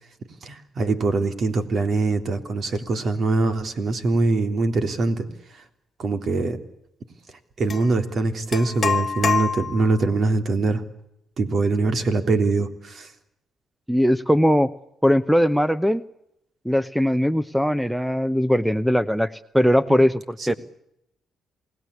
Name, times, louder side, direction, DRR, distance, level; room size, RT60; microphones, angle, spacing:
voice 1, 0.4-5.3 5.5-5.6 6.0-6.6 7.6-10.8 11.4-13.1 19.9-20.0 20.4-20.6, right 3 dB, 50° right, 7 dB, 3.6 m, -23 dB
sound 1, 7.7-7.9 8.5-10.0, left 6 dB, 45° left, 1.7 m, -25 dB
voice 2, 13.9-14.7 15.0-16.0 16.6-20.2 20.5-20.6, equal, ahead, 14 dB, 0.9 m, -20 dB
28.5 x 19.0 x 8.5 m, 0.81 s
cardioid pair, 90°, 0 cm